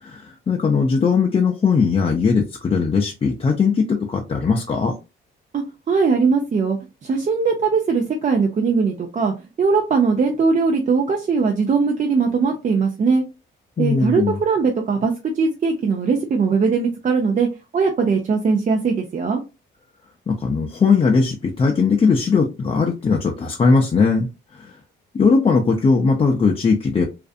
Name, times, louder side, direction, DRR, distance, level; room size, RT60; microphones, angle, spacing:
voice 1, 0.0-5.0 13.8-14.4 20.3-24.8 25.1-27.0, left 5 dB, 30° left, 1 dB, 0.5 m, -19 dB
voice 2, 5.5-13.2 13.8-17.5 17.7-19.4, right 5 dB, 40° right, 1 dB, 0.5 m, -20 dB
2.5 x 2.4 x 2.4 m, 0.27 s
cardioid pair, 90°, 20 cm